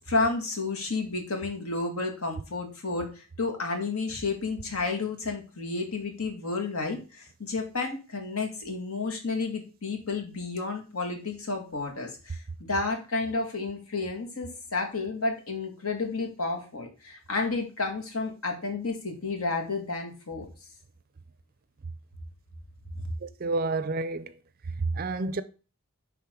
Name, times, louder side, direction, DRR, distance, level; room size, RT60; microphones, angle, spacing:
voice 1, 0.1-20.5, left 3 dB, 75° left, 1.9 m, -31 dB
voice 2, 23.2-24.3 24.8-25.4, right 3 dB, 40° right, 0.5 m, -29 dB
10.0 x 3.7 x 3.7 m
head